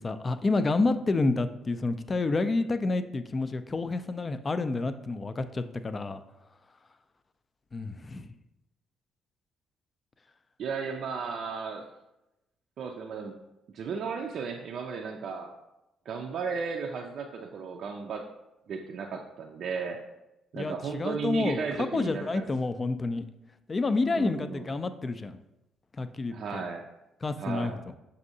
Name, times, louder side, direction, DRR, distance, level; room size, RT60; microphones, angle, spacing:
voice 1, 0.0-6.2 7.7-8.3 20.6-23.2 23.7-25.4 26.0-26.6 27.2-27.7, left 3 dB, 35° left, 11 dB, 0.3 m, -29 dB
voice 2, 10.6-11.9 12.8-13.3 13.7-15.5 16.1-18.3 18.7-20.0 20.5-22.4 24.1-24.7 26.3-26.8 27.4-27.8, right 5 dB, 60° right, 1 dB, 0.4 m, -35 dB
6.4 x 2.7 x 2.7 m, 0.92 s
hypercardioid pair, 50°, 0 cm